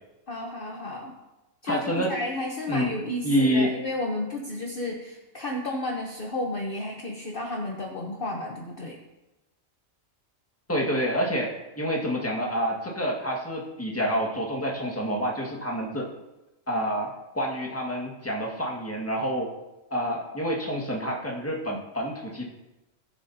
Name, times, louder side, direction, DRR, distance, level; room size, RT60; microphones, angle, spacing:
voice 1, 0.3-1.2 1.6-9.0, left 1 dB, 45° left, 0 dB, 1.1 m, -32 dB
voice 2, 1.7-2.1 2.7-2.9 3.2-3.7 10.7-16.1 16.7-19.5 19.9-22.4, equal, 10° left, -1 dB, 1.7 m, -28 dB
18.0 x 7.1 x 2.8 m, 1.0 s
omnidirectional pair, 1.3 m